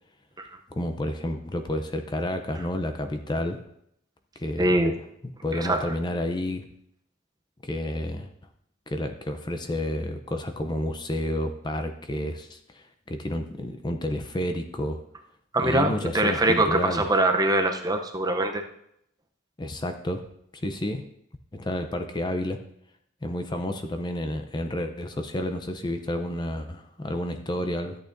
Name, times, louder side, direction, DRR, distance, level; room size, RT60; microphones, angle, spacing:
voice 1, 0.7-3.6 4.4-4.8 5.4-6.6 7.6-8.3 8.9-15.0 15.6-17.0 19.6-20.2 20.5-21.0 21.5-22.6 23.2-28.0, left 1 dB, 20° left, 6 dB, 0.6 m, -30 dB
voice 2, 4.6-5.0 5.5-5.9 15.5-18.6, right 2 dB, 20° right, 5 dB, 0.6 m, -23 dB
13.5 x 8.6 x 2.6 m, 0.74 s
head